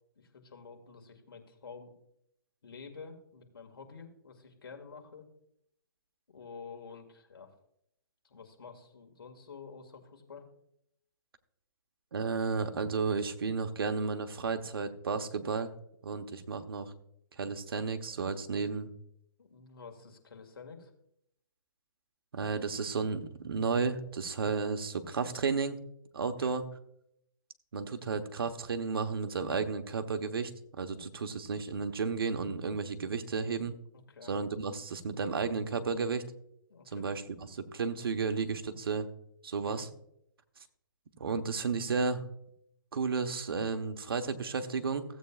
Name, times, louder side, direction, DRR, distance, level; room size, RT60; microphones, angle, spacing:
voice 1, 0.2-1.9 2.6-5.3 6.3-7.5 8.2-10.5 19.4-20.9 26.2-26.6 33.9-34.3 36.7-37.2 39.6-39.9, left 5 dB, 80° left, 4 dB, 2.1 m, -49 dB
voice 2, 12.1-15.7 16.0-16.9 17.4-18.9 22.3-25.8 26.1-26.6 27.7-33.7 34.3-36.2 36.9-37.2 37.5-39.1 39.4-39.9 41.2-42.2 42.9-45.0, right 5 dB, 80° right, 7 dB, 1.1 m, -33 dB
16.0 x 8.2 x 2.4 m, 0.75 s
hypercardioid pair, 145°, 12 cm